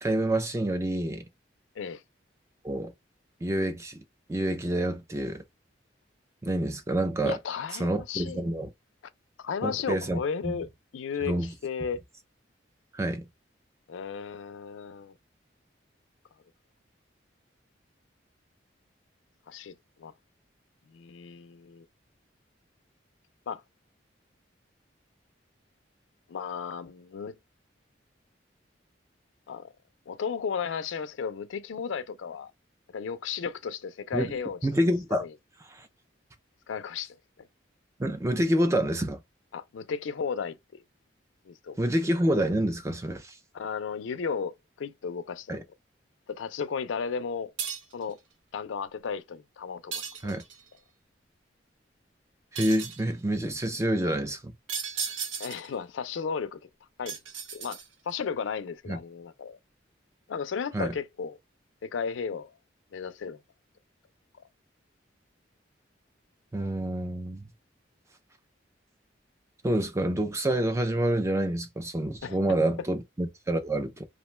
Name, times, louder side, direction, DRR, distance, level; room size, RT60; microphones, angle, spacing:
voice 1, 0.0-1.2 2.6-2.9 3.4-4.0 4.3-5.4 6.4-7.4 7.8-8.7 9.6-10.6 11.3-11.5 12.9-13.2 34.1-34.3 34.6-35.2 35.7-35.9 38.0-39.2 41.8-43.4 45.5-45.6 50.2-50.4 52.5-54.5 58.9-59.0 60.7-60.9 66.5-67.4 69.6-74.1, right 1 dB, 15° right, 0.3 m, -27 dB
voice 2, 7.2-8.4 9.4-11.3 11.6-12.0 13.9-15.1 19.5-19.7 20.0-20.1 20.9-21.8 23.5-23.6 26.3-27.4 29.5-29.7 30.1-32.5 32.9-34.6 35.1-35.3 36.7-37.2 39.5-40.8 41.5-41.8 43.5-45.6 46.3-47.5 47.9-48.2 48.5-50.3 55.4-56.7 57.0-57.2 57.5-57.8 58.1-59.6 60.3-61.4 61.8-62.6 62.9-63.4 64.4-64.5 72.2-72.4, left 6 dB, 85° left, 0.4 m, -34 dB
sound 1, 47.6-48.0 49.9-50.7 52.6-53.1 54.7-55.7 57.1-58.1, right 6 dB, 85° right, 0.6 m, -35 dB
2.5 x 2.2 x 3.0 m
head